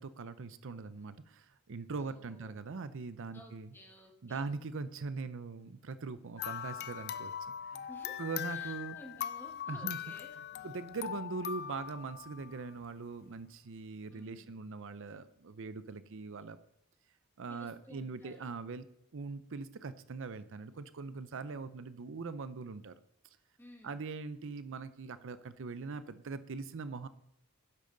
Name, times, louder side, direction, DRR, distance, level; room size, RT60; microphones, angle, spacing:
voice 1, 0.0-3.7 4.2-7.3 7.7-7.9 8.2-9.0 9.7-10.0 10.4-16.6 17.4-18.9 19.1-23.0 23.8-27.1, right 4 dB, 60° right, 13 dB, 0.6 m, -41 dB
voice 2, 2.0-2.5 3.3-4.5 7.9-10.3 14.1-14.6 17.5-18.5 23.6-23.9, left 1 dB, 10° left, 2 dB, 1.5 m, -55 dB
sound 1, 6.4-12.8, left 9 dB, 45° left, 0.4 m, -41 dB
12.0 x 10.5 x 3.9 m, 0.73 s
head